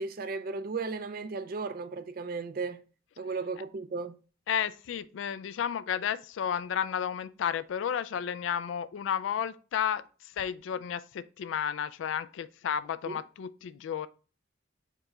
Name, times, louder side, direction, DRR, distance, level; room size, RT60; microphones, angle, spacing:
voice 1, 0.0-2.8 3.2-4.1 13.1-13.2, right 4 dB, 50° right, 0.4 m, -35 dB
voice 2, 4.5-14.1, left 8 dB, 80° left, 0.3 m, -32 dB
4.8 x 2.2 x 4.8 m
head